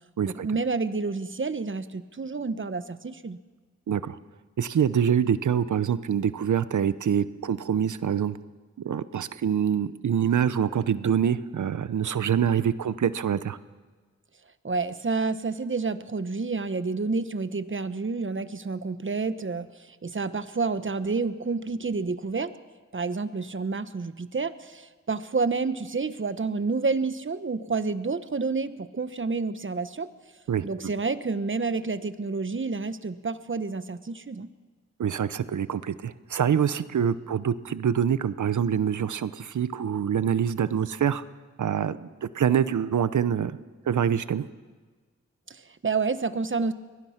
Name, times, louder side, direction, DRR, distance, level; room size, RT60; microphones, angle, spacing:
voice 1, 0.2-3.4 14.6-22.5 22.9-30.1 30.6-34.5 45.5-46.7, right 4 dB, 40° right, 12 dB, 1.2 m, -29 dB
voice 2, 3.9-4.2 4.6-8.4 8.8-13.6 30.5-30.6 35.0-41.2 41.6-43.6 43.9-44.4, right 8 dB, 80° right, 14 dB, 0.9 m, -25 dB
24.0 x 18.5 x 5.9 m, 1.4 s
cardioid pair, 55°, 29 cm